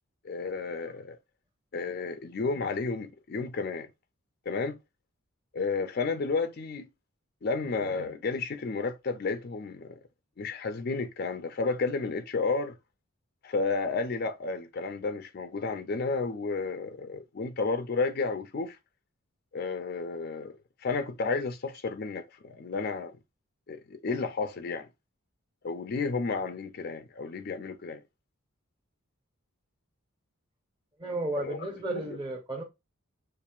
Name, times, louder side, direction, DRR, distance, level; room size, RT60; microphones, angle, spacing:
voice 1, 0.2-1.2 1.7-3.9 4.5-4.8 5.5-6.9 7.4-10.0 10.4-12.8 13.4-18.8 19.5-23.1 23.7-24.9 25.6-28.0 31.4-32.2, left 4 dB, 50° left, 0.4 m, -32 dB
voice 2, 31.0-32.6, right 2 dB, 20° right, 0.8 m, -33 dB
7.1 x 2.5 x 2.4 m
head